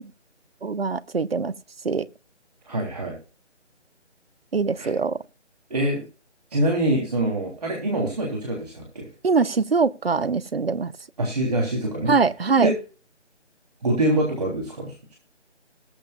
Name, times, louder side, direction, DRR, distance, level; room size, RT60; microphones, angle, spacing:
voice 1, 0.6-1.5 1.8-2.0 4.5-5.2 9.2-10.9 12.1-12.7, right 4 dB, 55° right, 0.8 m, -22 dB
voice 2, 2.7-3.1 4.8-4.9 5.7-6.0 6.5-9.1 11.2-12.1 12.6-12.7 13.8-15.1, right 1 dB, 35° right, 3.3 m, -25 dB
20.5 x 7.1 x 2.4 m
figure-of-eight pair, 155°, 35 cm